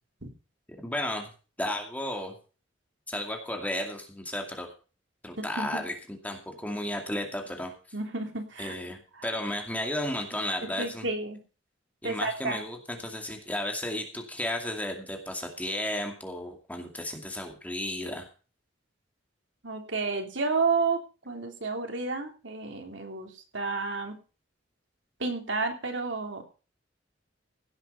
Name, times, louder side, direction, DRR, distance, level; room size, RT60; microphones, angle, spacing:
voice 1, 0.8-1.3 1.6-2.3 3.1-4.7 5.2-7.7 8.6-11.0 12.0-18.3, left 1 dB, 10° left, 3 dB, 2.4 m, -33 dB
voice 2, 5.4-5.8 7.9-8.8 9.1-9.3 10.6-11.4 12.0-12.6 19.6-24.2 25.2-26.4, right 4 dB, 75° right, 4 dB, 3.2 m, -31 dB
16.5 x 8.1 x 5.7 m, 0.36 s
head